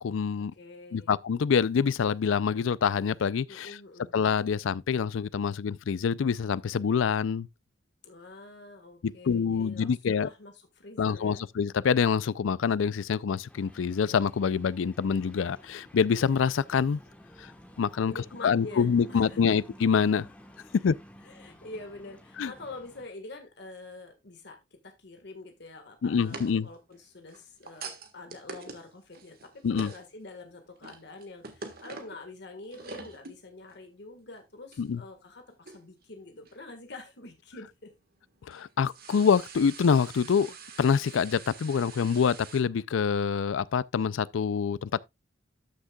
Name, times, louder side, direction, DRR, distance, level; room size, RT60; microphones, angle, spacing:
voice 1, 0.0-0.5 0.9-3.8 4.1-7.5 9.0-10.3 11.0-17.0 17.4-17.5 17.8-18.1 18.4-20.3 20.8-21.0 22.4-22.5 26.0-26.7 29.6-29.9 34.8-35.0 38.5-45.0, left 6 dB, 80° left, 0.4 m, -26 dB
voice 2, 0.5-1.1 3.5-4.1 8.0-11.5 18.0-19.4 21.2-24.6 24.8-37.9, left 2 dB, 60° left, 1.6 m, -46 dB
sound 1, 13.5-23.1, equal, 5° left, 1.2 m, -53 dB
sound 2, 26.2-30.2 30.6-32.3 32.6-33.4 33.7-33.8 34.7-34.9 35.7-36.0 36.5-36.6 38.2-42.6, right 4 dB, 50° right, 1.5 m, -45 dB
13.0 x 6.4 x 2.3 m
head